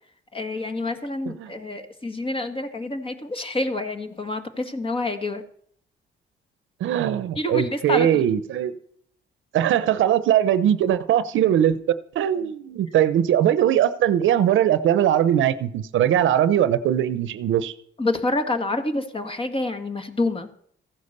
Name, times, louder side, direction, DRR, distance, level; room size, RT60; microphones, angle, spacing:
voice 1, 0.3-5.4 7.3-8.2 18.0-20.5, left 2 dB, 25° left, 6 dB, 1.9 m, -27 dB
voice 2, 6.8-8.7 9.5-11.8 12.1-17.7, right 10 dB, 75° right, 14 dB, 0.8 m, -20 dB
15.0 x 9.7 x 6.8 m, 0.63 s
cardioid pair, 90°, 20 cm